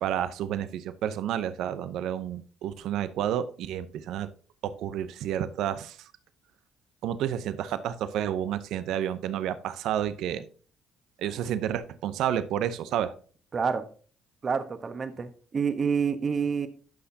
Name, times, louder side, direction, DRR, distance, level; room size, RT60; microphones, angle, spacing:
voice 1, 0.0-4.3 4.6-6.0 7.0-10.5 11.2-13.1, right 10 dB, 75° right, 13 dB, 0.7 m, -30 dB
voice 2, 13.5-13.8 14.4-16.7, right 6 dB, 40° right, 9 dB, 1.2 m, -28 dB
12.0 x 5.7 x 2.8 m, 0.40 s
supercardioid pair, 70°, 0 cm